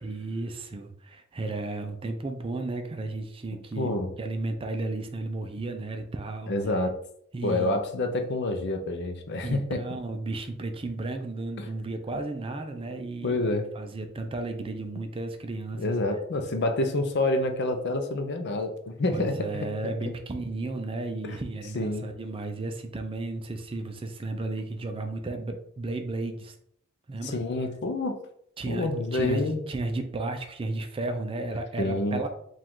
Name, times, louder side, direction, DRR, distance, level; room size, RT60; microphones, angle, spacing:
voice 1, 0.0-6.5 7.3-7.8 9.4-16.2 19.1-26.6 27.1-27.4 28.6-32.3, right 2 dB, 25° right, 6 dB, 0.4 m, -34 dB
voice 2, 3.8-4.1 6.5-7.0 7.4-9.8 11.6-11.7 13.2-13.7 15.7-19.7 21.3-21.4 21.7-22.1 27.2-28.2 28.6-29.6 31.8-32.3, left 2 dB, 55° left, 6 dB, 0.6 m, -28 dB
4.7 x 2.4 x 3.7 m, 0.69 s
head